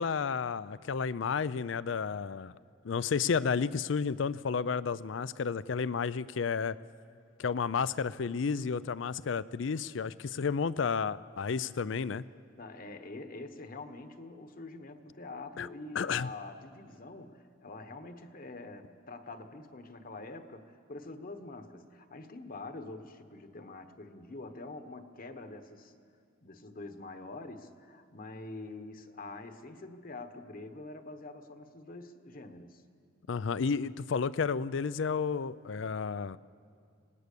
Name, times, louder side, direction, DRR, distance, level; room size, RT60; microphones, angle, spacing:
voice 1, 0.0-2.5 2.8-6.8 7.4-12.2 15.6-15.7 16.0-16.3 33.3-36.4, left 5 dB, 70° left, 18 dB, 0.5 m, -31 dB
voice 2, 12.6-25.9 26.4-32.8, left 2 dB, 50° left, 8 dB, 1.2 m, -45 dB
25.5 x 18.5 x 6.8 m, 2.3 s
head